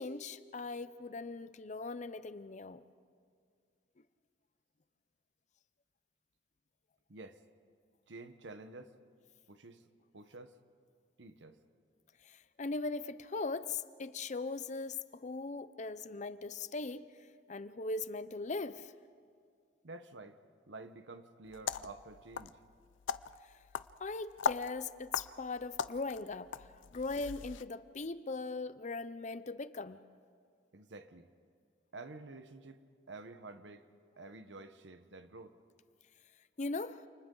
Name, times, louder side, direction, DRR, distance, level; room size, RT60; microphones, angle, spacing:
voice 1, 0.0-2.8 12.2-17.1 17.5-18.9 24.0-30.0 36.6-37.1, left 3 dB, 40° left, 0.6 m, -39 dB
voice 2, 7.1-7.4 8.1-9.0 9.5-9.9 10.1-10.6 11.2-11.6 19.8-20.4 20.7-22.6 30.7-31.3 31.9-33.8 34.2-35.6, right 3 dB, 75° right, 1.1 m, -50 dB
sound 1, 21.5-27.6, left 6 dB, 85° left, 0.5 m, -40 dB
29.5 x 28.5 x 3.9 m
head